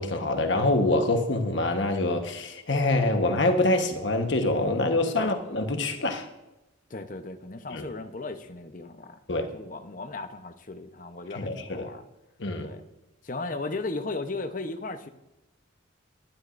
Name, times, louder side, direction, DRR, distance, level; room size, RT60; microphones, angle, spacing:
voice 1, 0.0-6.3 7.7-7.9 9.3-9.5 11.4-11.9 12.4-12.7, left 2 dB, 65° left, 1.2 m, -25 dB
voice 2, 6.9-9.2 9.5-12.0 12.6-12.8 13.2-15.1, left 3 dB, 40° left, 0.9 m, -36 dB
20.0 x 11.5 x 2.6 m
head